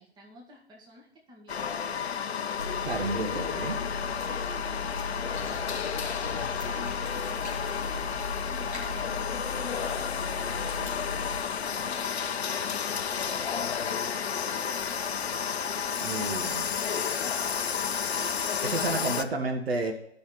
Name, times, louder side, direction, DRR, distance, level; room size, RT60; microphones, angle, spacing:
voice 1, 0.0-2.1 4.2-8.2 8.5-11.4 11.8-13.6 16.3-16.7 18.1-19.3, right 1 dB, 10° right, -1 dB, 1.5 m, -50 dB
sound 1, 1.5-19.2, left 7 dB, 70° left, 0.7 m, -31 dB
sound 2, 2.6-11.4, left 3 dB, 90° right, 2.5 m, -37 dB
voice 2, 2.8-3.8 16.0-16.7 18.6-19.9, right 3 dB, 65° right, 5 dB, 1.2 m, -31 dB
13.5 x 5.6 x 3.1 m, 0.76 s
figure-of-eight pair, 125°, 33 cm